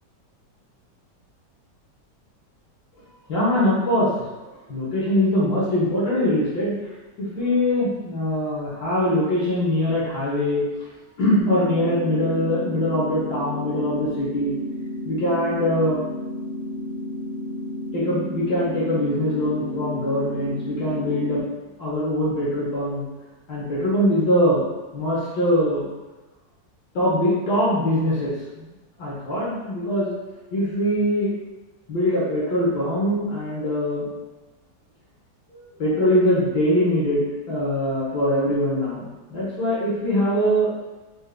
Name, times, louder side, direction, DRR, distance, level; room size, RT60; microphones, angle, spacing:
voice 1, 3.3-4.1 4.7-6.7 7.2-10.6 11.2-14.5 15.0-16.0 17.9-21.4 21.8-23.1 23.5-24.6 24.9-25.9 26.9-28.7 29.0-30.1 30.5-31.3 31.9-34.1 35.8-40.7, left 1 dB, 70° left, -8 dB, 1.9 m, -22 dB
sound 1, 11.4-21.4, left 1 dB, 30° left, 1.4 m, -32 dB
5.3 x 3.4 x 2.2 m, 1.1 s
omnidirectional pair, 1.9 m